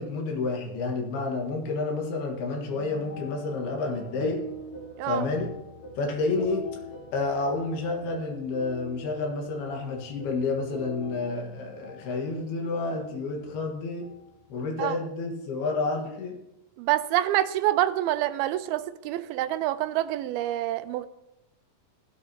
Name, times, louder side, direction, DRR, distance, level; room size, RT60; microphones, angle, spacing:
voice 1, 0.0-4.4 5.1-5.5 6.0-6.7 7.1-14.1 14.5-16.4, left 3 dB, 90° left, 1 dB, 3.6 m, -30 dB
sound 1, 2.7-14.5, left 2 dB, 65° left, 3.8 m, -44 dB
voice 2, 16.8-21.1, right 14 dB, 85° right, 12 dB, 2.5 m, -26 dB
17.0 x 12.5 x 2.9 m, 0.90 s
omnidirectional pair, 4.3 m